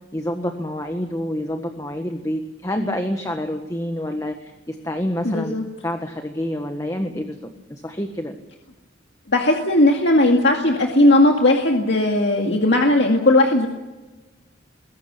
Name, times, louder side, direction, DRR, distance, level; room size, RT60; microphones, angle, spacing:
voice 1, 0.1-5.5 5.8-7.4 7.7-8.3, left 1 dB, 15° left, 5 dB, 1.5 m, -27 dB
voice 2, 5.2-5.6 9.3-13.7, left 1 dB, 65° left, 1 dB, 2.2 m, -17 dB
22.0 x 18.0 x 8.3 m, 1.1 s
head